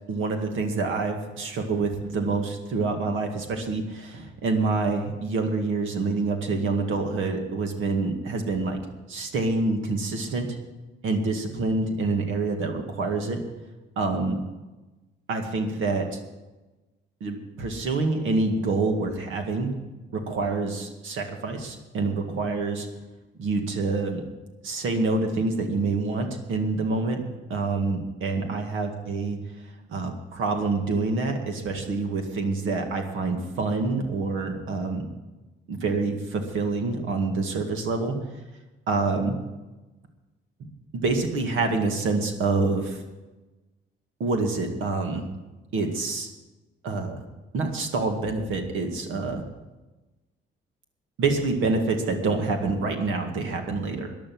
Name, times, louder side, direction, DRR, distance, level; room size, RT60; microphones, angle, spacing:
voice 1, 0.1-8.8 9.1-10.5 11.0-13.4 14.0-14.4 15.3-16.0 17.2-19.7 20.1-22.9 23.4-24.2 24.6-27.2 27.5-29.4 29.9-35.0 35.7-38.2 38.9-39.3 40.9-43.0 44.2-45.2 45.7-46.3 46.8-47.2 47.5-49.4 51.2-54.1, right 3 dB, 80° right, 4 dB, 2.2 m, -26 dB
14.5 x 10.5 x 6.2 m, 1.1 s
cardioid pair, 90°, 20 cm